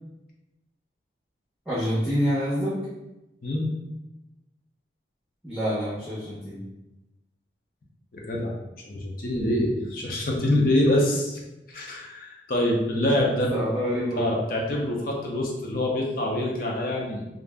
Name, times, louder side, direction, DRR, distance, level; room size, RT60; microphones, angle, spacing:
voice 1, 1.7-2.8 5.4-6.6 13.1-14.3, equal, 5° right, -9 dB, 0.6 m, -27 dB
voice 2, 8.1-8.5 8.9-11.4 11.7-13.5 14.2-17.2, left 1 dB, 50° left, -1 dB, 0.6 m, -25 dB
2.5 x 2.0 x 3.3 m, 0.97 s
head